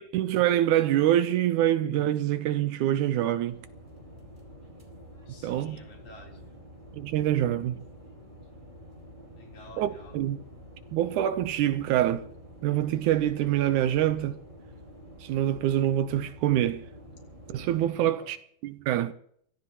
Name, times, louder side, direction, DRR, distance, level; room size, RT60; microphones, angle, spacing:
voice 1, 0.0-3.6 5.4-5.8 6.9-7.8 9.8-10.4 10.9-12.3 12.6-14.4 15.2-16.8 17.5-18.4 18.6-19.1, right 12 dB, 80° right, 2.1 m, -25 dB
sound 1, 3.5-17.9, equal, 15° right, 4.3 m, -48 dB
voice 2, 5.3-6.5 9.3-10.2 17.9-18.3, left 2 dB, 65° left, 5.1 m, -50 dB
23.5 x 17.0 x 3.0 m
omnidirectional pair, 3.7 m